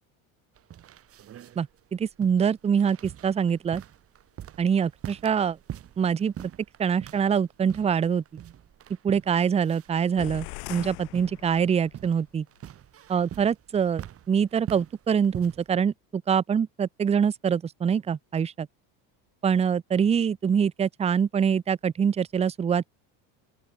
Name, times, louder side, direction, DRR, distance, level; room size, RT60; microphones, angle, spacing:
sound 1, 0.6-15.7, right 11 dB, 30° right, 3.6 m, -44 dB
voice 1, 1.6-3.8 4.6-5.6 6.0-6.5 6.8-8.2 9.0-12.5 13.1-18.7 19.4-22.9, right 7 dB, 15° right, 0.7 m, -25 dB
sound 2, 10.2-12.0, left 40 dB or more, 70° left, 3.0 m, -40 dB
open air
cardioid pair, 155°, 43 cm